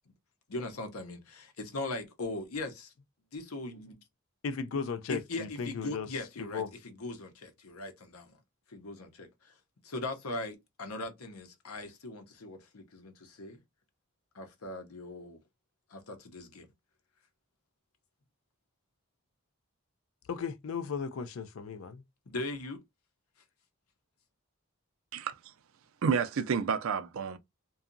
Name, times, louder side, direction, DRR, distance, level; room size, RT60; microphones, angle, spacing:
voice 1, 0.5-2.9 3.3-4.0 5.1-8.4 8.7-9.5 9.8-13.6 14.3-15.4 15.9-16.7 22.3-22.8, left 2 dB, 90° left, 0.8 m, -40 dB
voice 2, 4.4-6.1 6.4-6.7 20.3-22.0, left 5 dB, 65° left, 0.4 m, -36 dB
voice 3, 26.0-27.4, right 6 dB, 70° right, 0.4 m, -29 dB
2.7 x 2.3 x 2.5 m
head